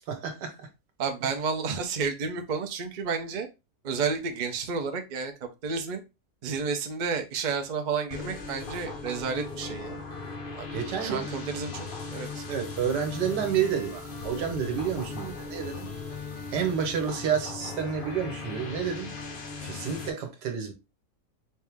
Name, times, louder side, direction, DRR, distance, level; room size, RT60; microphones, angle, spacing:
voice 1, 0.1-0.7 10.7-11.3 12.5-15.9 16.5-19.1 19.6-20.7, right 7 dB, 90° right, 1.6 m, -30 dB
voice 2, 1.0-3.5 3.8-6.0 6.4-10.0 10.6-10.7 11.0-12.4, right 5 dB, 60° right, 0.4 m, -31 dB
sound 1, 8.1-20.1, left 4 dB, 75° left, 0.5 m, -38 dB
3.7 x 2.8 x 3.4 m
omnidirectional pair, 1.8 m